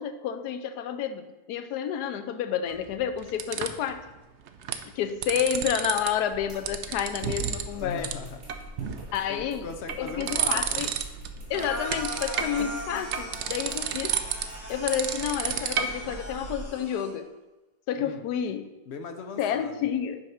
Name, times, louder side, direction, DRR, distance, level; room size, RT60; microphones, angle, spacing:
voice 1, 0.0-4.1 4.9-8.1 9.1-9.7 10.0-10.9 11.5-14.2 14.7-17.3 17.9-18.7 19.4-20.2, left 9 dB, 85° left, 10 dB, 1.1 m, -30 dB
sound 1, 2.7-3.9 4.5-4.8 5.1-6.1 6.4-7.7 8.0-8.1 8.5-9.1 9.6-11.3 11.5-16.2, right 8 dB, 65° right, 0.7 m, -30 dB
sound 2, 6.3-16.7, right 1 dB, 45° right, 3.0 m, -44 dB
voice 2, 7.7-8.4 8.8-10.9 18.0-18.3 18.9-19.9, left 5 dB, 60° left, 7 dB, 0.7 m, -40 dB
sound 3, 11.5-17.1, equal, 10° right, 1.7 m, -39 dB
6.4 x 5.1 x 5.7 m, 1.1 s
omnidirectional pair, 1.7 m